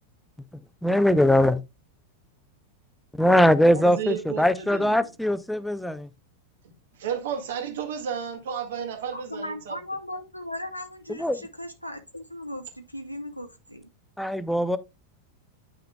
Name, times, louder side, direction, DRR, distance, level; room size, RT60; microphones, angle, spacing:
voice 1, 0.8-1.6 3.1-6.1 11.2-11.4 14.2-14.8, left 1 dB, ahead, 0.5 m, -21 dB
voice 2, 3.6-5.1 7.0-9.8, right 8 dB, 60° right, 1.8 m, -33 dB
voice 3, 9.1-13.9, left 1 dB, 90° left, 0.7 m, -37 dB
9.9 x 5.7 x 2.2 m
figure-of-eight pair, 90°, 0 cm